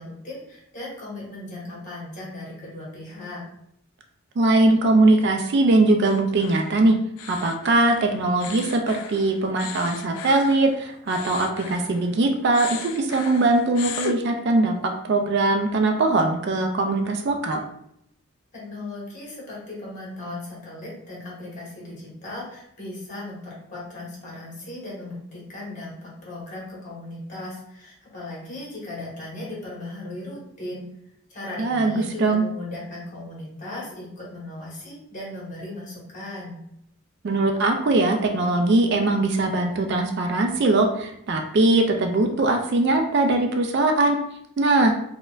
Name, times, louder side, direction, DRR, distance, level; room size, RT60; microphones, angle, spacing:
voice 1, 0.0-3.4 18.5-30.8 31.3-36.6, left 2 dB, 35° left, -5 dB, 1.2 m, -37 dB
voice 2, 4.4-7.0 7.2-17.6 31.6-32.4 37.2-44.2 44.6-44.9, right 2 dB, 50° right, 4 dB, 0.3 m, -21 dB
sound 1, 6.0-12.2 12.5-14.2, left 8 dB, 90° left, 0.3 m, -37 dB
4.3 x 2.2 x 2.3 m, 0.75 s
head